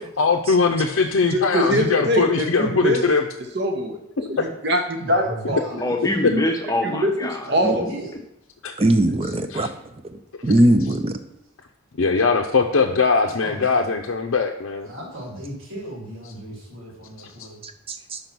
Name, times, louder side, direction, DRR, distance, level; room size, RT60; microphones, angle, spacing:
voice 1, 0.2-3.2 4.2-4.3 8.6-8.7 9.5-9.7 12.0-14.9, left 4 dB, 70° left, 1 dB, 0.6 m, -21 dB
voice 2, 1.3-3.0 3.5-4.0 4.3-5.6 6.8-7.1 7.5-7.9, equal, 50° right, 3 dB, 0.9 m, -22 dB
voice 3, 4.9-6.0 7.5-8.1 13.2-13.9 14.8-17.6, equal, 75° right, -4 dB, 2.4 m, -36 dB
voice 4, 5.8-7.9, left 1 dB, 15° left, 3 dB, 0.7 m, -25 dB
voice 5, 8.8-9.7 10.4-11.2 17.6-18.2, right 1 dB, 25° right, 8 dB, 0.5 m, -19 dB
5.4 x 5.3 x 6.0 m, 0.84 s
head